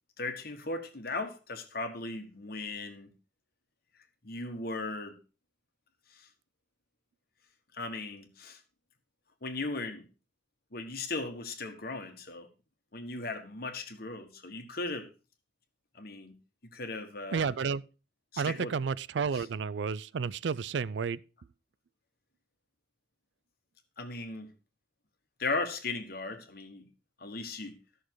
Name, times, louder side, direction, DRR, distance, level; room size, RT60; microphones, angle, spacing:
voice 1, 0.2-3.1 4.2-5.2 6.1-6.3 7.7-8.6 9.4-10.1 10.7-12.5 12.9-15.1 15.9-16.3 16.7-17.5 18.3-18.8 19.3-19.4 24.0-24.5 25.4-26.9 27.2-27.8, left 3 dB, 55° left, 1.5 m, -37 dB
voice 2, 17.3-17.8 18.4-21.2, right 6 dB, 75° right, 0.4 m, -31 dB
13.5 x 6.4 x 4.7 m
head